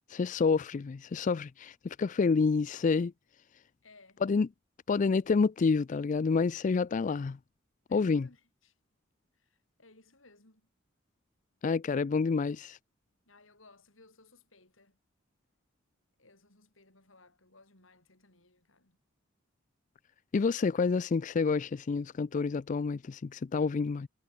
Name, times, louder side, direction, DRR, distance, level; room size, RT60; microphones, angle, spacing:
voice 1, 0.1-3.1 4.2-4.5 4.9-7.4 7.9-8.3 11.6-12.8 20.3-24.1, left 4 dB, 40° left, 0.4 m, -28 dB
voice 2, 3.8-4.2 7.9-8.7 9.3-10.7 13.3-15.0 16.2-19.0, left 3 dB, 85° left, 7.9 m, -60 dB
head